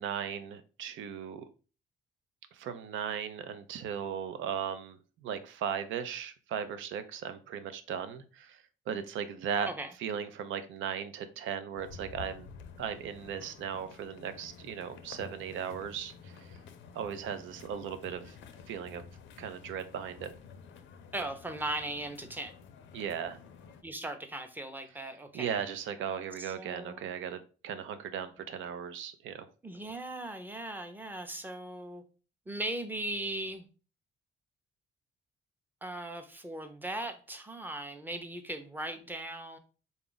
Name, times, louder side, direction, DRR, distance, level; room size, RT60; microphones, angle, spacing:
voice 1, 0.0-1.4 2.5-9.7 10.0-12.5 12.8-16.6 16.9-18.4 18.7-19.0 19.4-20.3 22.9-23.4 25.3-29.5, right 8 dB, 80° right, 10 dB, 0.5 m, -37 dB
sound 1, 11.8-23.8, left 6 dB, 75° left, 0.5 m, -51 dB
voice 2, 21.1-22.5 23.8-25.6 26.4-27.0 29.6-32.0 32.5-33.7 35.8-39.6, right 1 dB, 10° right, 7 dB, 0.6 m, -38 dB
3.9 x 2.4 x 3.8 m, 0.36 s
cardioid pair, 90°, 20 cm